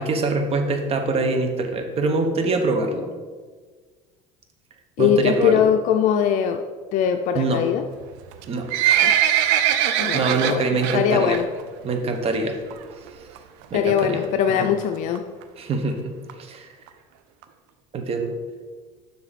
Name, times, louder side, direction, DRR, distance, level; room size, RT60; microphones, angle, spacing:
voice 1, 0.0-3.1 5.0-5.6 7.3-7.6 8.5-8.7 10.1-11.4 11.8-12.6 13.7-14.2 14.5-14.7 15.6-16.1 16.4-16.7 17.9-18.3, right 3 dB, 40° right, 5 dB, 1.2 m, -24 dB
voice 2, 5.0-6.6 6.9-7.8 9.0-9.1 10.0-10.7 10.9-11.5 13.7-15.2, left 8 dB, 60° left, 6 dB, 0.5 m, -21 dB
Livestock farm animals working animals, 8.3-11.0 11.3-11.6 11.9-12.0 12.7-12.8 13.1-13.2 13.4-13.5 14.0-14.3 14.8-14.9 15.2-15.3 15.4-15.5 15.7-15.8 16.3-16.4 16.9-17.0 17.4-17.5, right 10 dB, 85° right, 0.6 m, -21 dB
7.7 x 5.8 x 4.1 m, 1.5 s
supercardioid pair, 105°, 15 cm